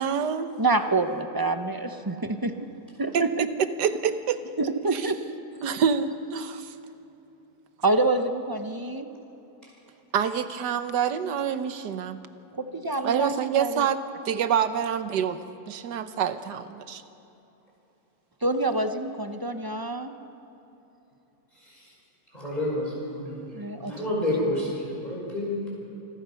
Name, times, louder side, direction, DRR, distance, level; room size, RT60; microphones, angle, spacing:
voice 1, 0.0-0.6 3.1-3.3 3.8-4.4 4.9-5.1 5.6-6.7 10.1-12.2 13.0-14.0 14.2-17.0, right 8 dB, 75° right, 11 dB, 1.5 m, -27 dB
voice 2, 0.6-2.5 3.0-3.5 4.6-5.2 7.8-9.1 12.5-13.9 18.4-20.1 23.5-23.9, right 2 dB, 20° right, 7 dB, 0.5 m, -26 dB
voice 3, 22.3-23.4 23.8-25.7, left 1 dB, 25° left, -4 dB, 5.2 m, -29 dB
27.5 x 21.0 x 5.7 m, 3.0 s
omnidirectional pair, 1.8 m